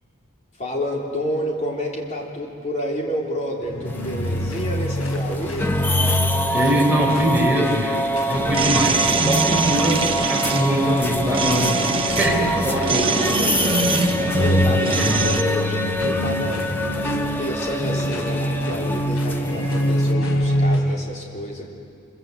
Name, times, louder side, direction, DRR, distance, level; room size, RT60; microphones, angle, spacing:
voice 1, 0.6-5.7 12.4-14.0 14.4-16.6 17.4-21.7, equal, 35° left, -2 dB, 3.6 m, -29 dB
Marche dans le Jardin, 3.6-20.8, equal, 90° left, 4.4 m, -25 dB
sound 1, 3.9-20.1, equal, 10° left, 0.8 m, -26 dB
voice 2, 6.5-8.0 8.3-11.8 12.2-13.2 15.0-15.2, right 1 dB, 10° right, -4 dB, 4.6 m, -22 dB
sound 2, 8.3-15.4, right 4 dB, 25° right, 0.9 m, -24 dB
25.5 x 23.0 x 8.2 m, 2.3 s
head